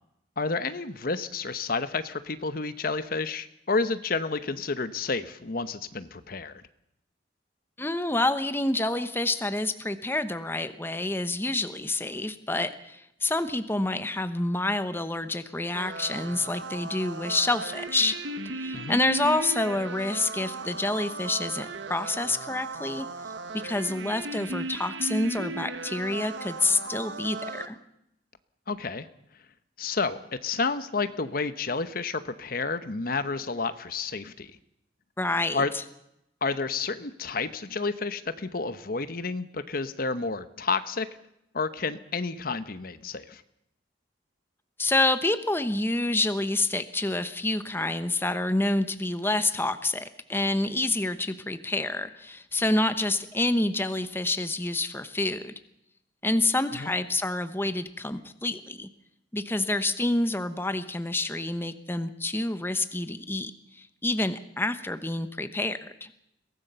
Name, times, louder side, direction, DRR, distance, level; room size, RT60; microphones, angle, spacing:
voice 1, 0.4-6.6 18.7-19.0 28.7-29.1 29.8-34.5 35.5-35.7 36.4-41.1 41.5-43.4 56.7-56.9, left 4 dB, 55° left, 12 dB, 0.9 m, -30 dB
voice 2, 7.8-18.2 18.5-23.1 23.5-27.7 35.2-35.8 44.8-55.5 56.2-58.9 59.3-63.5 63.8-66.1, left 2 dB, 15° left, 10 dB, 1.0 m, -28 dB
sound 1, 15.7-27.7, right 2 dB, 85° right, 1.4 m, -36 dB
23.0 x 17.5 x 6.9 m, 0.81 s
head